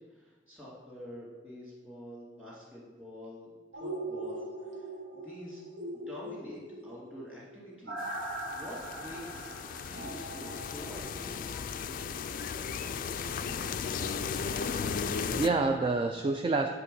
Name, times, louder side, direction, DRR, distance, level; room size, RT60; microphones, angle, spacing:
voice 1, 0.1-4.4 4.7-4.9 5.1-5.6 5.9-11.5, equal, 10° right, -6 dB, 2.3 m, -47 dB
sound 1, 3.7-11.6 12.0-12.1, right 1 dB, 85° right, 1.4 m, -41 dB
sound 2, 8.0-15.5, left 6 dB, 50° left, 0.3 m, -36 dB
voice 2, 14.3-16.7, right 3 dB, 30° right, 4 dB, 0.3 m, -30 dB
8.4 x 3.5 x 5.3 m, 1.3 s
head